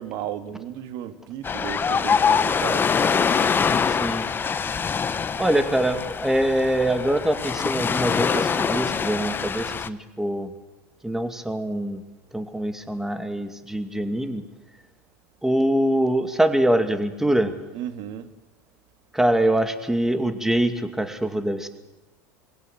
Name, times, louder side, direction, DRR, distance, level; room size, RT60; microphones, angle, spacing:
voice 1, 0.0-2.9 17.7-18.3, right 10 dB, 60° right, 2.0 m, -34 dB
Ocean, 1.4-9.9, left 6 dB, 25° left, 1.1 m, -24 dB
voice 2, 5.4-10.5 11.0-12.0 12.3-14.4 15.4-17.5 19.1-21.7, right 1 dB, 5° right, 2.4 m, -24 dB
23.0 x 17.0 x 8.0 m
hypercardioid pair, 95°, 8 cm